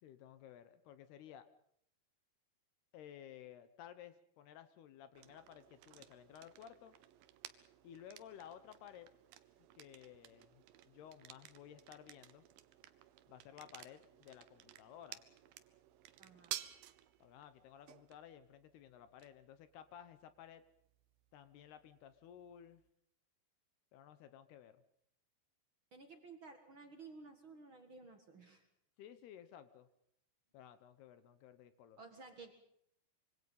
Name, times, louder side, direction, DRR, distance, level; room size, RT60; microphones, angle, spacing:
voice 1, 0.0-1.5 2.9-7.0 7.8-9.1 9.7-12.4 13.3-15.2 17.2-20.6 21.3-22.8 23.9-24.8 29.0-29.9 30.5-32.0, left 10 dB, 70° left, 12 dB, 2.9 m, -56 dB
sound 1, 5.2-22.9, right 13 dB, 75° right, 2.2 m, -55 dB
voice 2, 16.2-16.5 25.9-28.7 32.0-32.5, right 4 dB, 55° right, 6 dB, 1.4 m, -55 dB
25.5 x 24.0 x 5.5 m, 0.70 s
omnidirectional pair, 5.2 m